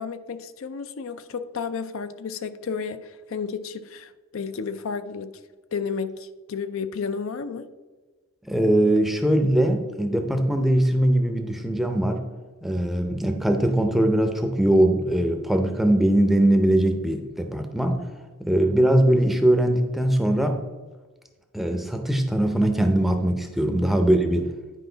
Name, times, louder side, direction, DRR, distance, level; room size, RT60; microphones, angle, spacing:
voice 1, 0.0-5.3 5.7-7.7 23.6-23.7, left 5 dB, 70° left, 11 dB, 0.5 m, -32 dB
voice 2, 8.5-12.2 12.6-18.0 18.4-20.6 21.5-24.5, right 1 dB, ahead, 5 dB, 0.5 m, -21 dB
10.0 x 5.0 x 3.9 m, 1.3 s
head